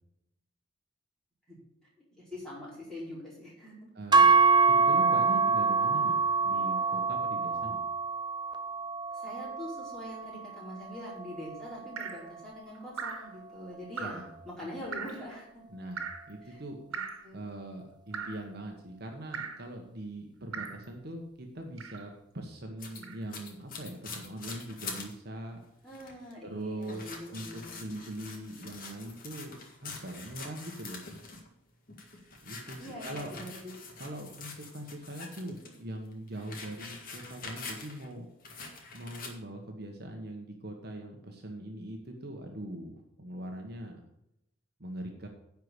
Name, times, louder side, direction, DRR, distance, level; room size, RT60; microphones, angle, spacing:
voice 1, 2.2-3.9 9.1-15.6 16.5-16.6 16.9-17.4 25.8-27.8 32.8-33.7, left 1 dB, 5° left, -8 dB, 4.8 m, -44 dB
voice 2, 3.9-4.3 4.7-7.8 14.0-14.3 14.6-14.8 15.7-16.8 17.3-25.6 26.4-31.0 32.4-33.3 34.0-38.3 38.9-44.0 44.8-45.3, right 1 dB, 50° right, 2 dB, 1.2 m, -42 dB
sound 1, 4.1-12.4, right 4 dB, 20° right, 0.6 m, -26 dB
Drip, 12.0-12.3 13.0-13.3 14.0-14.3 14.9-15.2 16.0-16.3 16.9-17.3 18.1-18.5 19.3-19.7 20.5-20.9 21.8-22.1 23.0-23.2, right 5 dB, 90° right, 1.4 m, -39 dB
sound 2, 22.8-25.1 25.5-25.6 25.9-26.3 26.8-31.5 31.9-35.8 36.1-38.1 38.4-39.3, left 4 dB, 45° left, 1.9 m, -45 dB
10.5 x 4.7 x 8.1 m, 0.83 s
head